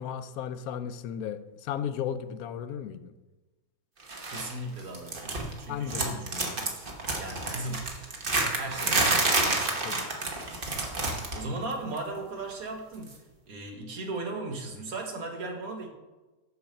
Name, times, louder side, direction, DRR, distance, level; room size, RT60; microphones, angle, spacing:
voice 1, 0.0-3.1 5.7-6.6 9.8-10.0, left 8 dB, 85° left, 12 dB, 1.1 m, -35 dB
sound 1, 4.1-4.5 4.8-5.6 5.9-11.5 11.7-12.0 13.1-13.2, right 3 dB, 40° right, 1.2 m, -29 dB
voice 2, 4.3-6.7 7.2-8.0 8.6-9.4 11.2-13.1 13.5-15.9, right 2 dB, 75° right, 3 dB, 1.7 m, -37 dB
7.0 x 5.1 x 6.6 m, 1.2 s
omnidirectional pair, 1.5 m